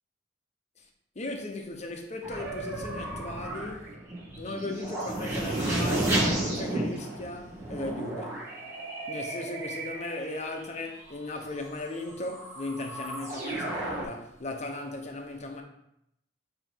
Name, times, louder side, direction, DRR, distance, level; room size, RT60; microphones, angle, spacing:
voice 1, 1.2-3.9 4.3-8.5 9.1-15.6, left 2 dB, 40° left, 0.8 m, -37 dB
sound 1, 2.2-10.5 11.6-11.7 12.0-14.0, right 1 dB, 15° right, 1.4 m, -32 dB
7.4 x 2.9 x 4.5 m
head